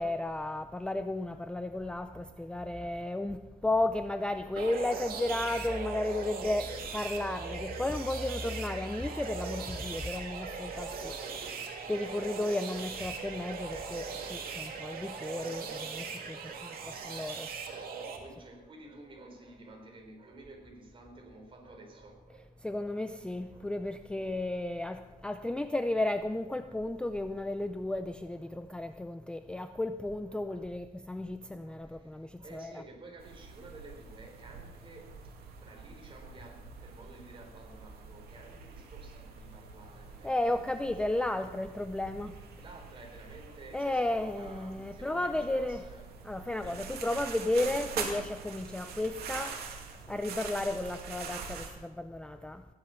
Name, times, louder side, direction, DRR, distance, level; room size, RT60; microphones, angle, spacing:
voice 1, 0.0-11.2 11.6-16.4 16.8-17.5 22.6-32.7 40.2-42.3 43.7-45.8 46.2-49.6 50.1-52.6, left 2 dB, 5° left, 0.5 m, -33 dB
voice 2, 1.8-3.2 3.7-3.8 16.4-24.4 24.9-25.1 25.5-25.7 26.5-26.7 28.4-28.6 30.3-30.7 31.6-35.3 35.6-40.8 42.6-46.1 46.5-47.2, right 2 dB, 35° right, 3.9 m, -53 dB
sound 1, 4.6-18.2, right 5 dB, 70° right, 2.3 m, -40 dB
sound 2, 33.2-51.7, right 6 dB, 90° right, 2.3 m, -44 dB
16.0 x 10.5 x 5.7 m
cardioid pair, 115°, 16 cm